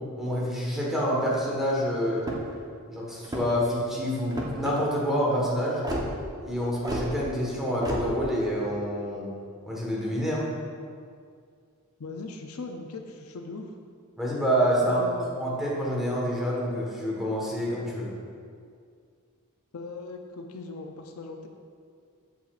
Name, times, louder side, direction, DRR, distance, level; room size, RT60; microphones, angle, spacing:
voice 1, 0.2-2.2 2.9-5.8 6.4-9.3 9.7-10.5 14.2-15.0 15.4-18.1, equal, ahead, -5 dB, 1.3 m, -27 dB
sound 1, 2.2-2.6 3.2-3.7 4.3-4.7 5.8-6.1 6.8-7.1 7.8-8.1, equal, 20° right, 0.8 m, -31 dB
voice 2, 12.0-13.7 14.8-15.4 19.7-21.5, left 3 dB, 75° left, 4 dB, 0.5 m, -39 dB
7.6 x 6.7 x 2.4 m, 2.2 s
head